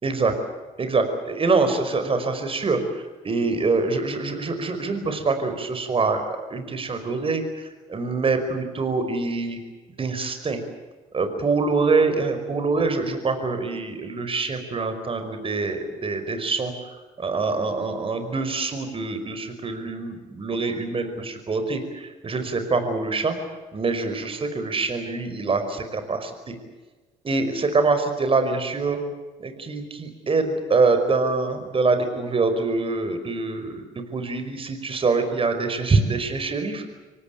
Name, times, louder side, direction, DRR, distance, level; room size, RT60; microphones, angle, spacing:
voice 1, 0.0-0.4 0.8-6.2 6.5-9.6 10.0-10.6 11.1-16.7 17.2-23.4 23.7-26.5 27.2-29.0 29.4-33.8 34.1-36.8, right 3 dB, 35° right, 8 dB, 5.2 m, -25 dB
25.5 x 18.5 x 9.3 m, 1.3 s
supercardioid pair, 70°, 15 cm